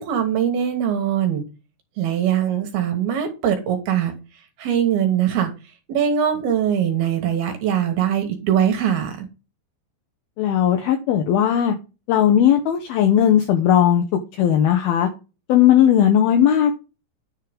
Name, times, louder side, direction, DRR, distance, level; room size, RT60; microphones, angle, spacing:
voice 1, 0.0-1.4 2.0-4.1 4.6-5.5 5.9-9.3, right 9 dB, 70° right, 2.8 m, -21 dB
voice 2, 10.4-11.7 12.1-14.0 14.4-15.1 15.5-16.7, left 10 dB, 80° left, 2.2 m, -17 dB
10.5 x 3.7 x 5.0 m
omnidirectional pair, 5.4 m